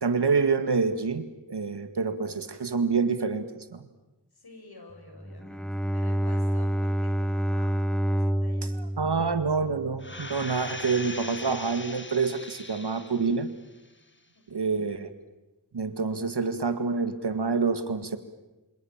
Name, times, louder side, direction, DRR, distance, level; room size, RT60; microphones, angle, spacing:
voice 1, 0.0-3.5 3.7-3.9 8.8-13.5 14.5-15.1 15.7-18.2, right 4 dB, 65° right, 10 dB, 2.0 m, -27 dB
voice 2, 4.3-5.7 5.9-8.8 14.5-14.9, left 2 dB, 60° left, 3 dB, 7.2 m, -50 dB
Bowed string instrument, 5.2-10.4, equal, ahead, 0.9 m, -28 dB
sound 1, 10.0-13.4 13.8-13.9, left 2 dB, 25° left, 2.0 m, -40 dB
27.5 x 26.5 x 7.4 m, 1.1 s
wide cardioid pair, 75°, 43 cm